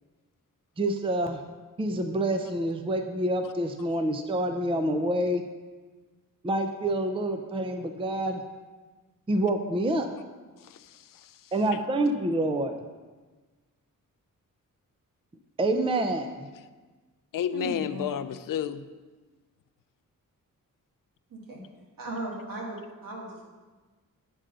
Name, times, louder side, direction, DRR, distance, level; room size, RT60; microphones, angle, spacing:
voice 1, 0.8-1.4 1.8-5.4 6.4-8.4 9.3-10.1 11.5-12.8 15.6-16.5, right 1 dB, 15° right, 6 dB, 0.5 m, -27 dB
voice 2, 10.6-11.8 17.3-18.9, left 9 dB, 75° left, 12 dB, 0.5 m, -32 dB
voice 3, 17.5-18.2 21.3-21.6 22.0-23.4, right 2 dB, 85° right, -3 dB, 2.1 m, -37 dB
8.8 x 3.8 x 6.7 m, 1.3 s
wide cardioid pair, 105°, 33 cm